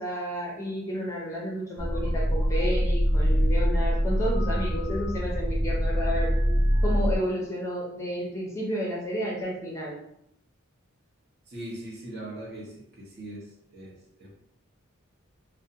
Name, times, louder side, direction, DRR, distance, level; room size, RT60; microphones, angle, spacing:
voice 1, 0.0-6.3 6.8-10.0, equal, 15° left, -4 dB, 0.5 m, -31 dB
sound 1, 1.8-7.2, equal, 25° right, 0.9 m, -24 dB
voice 2, 11.5-14.3, right 1 dB, 50° right, -4 dB, 0.7 m, -41 dB
2.6 x 2.1 x 2.6 m, 0.76 s
head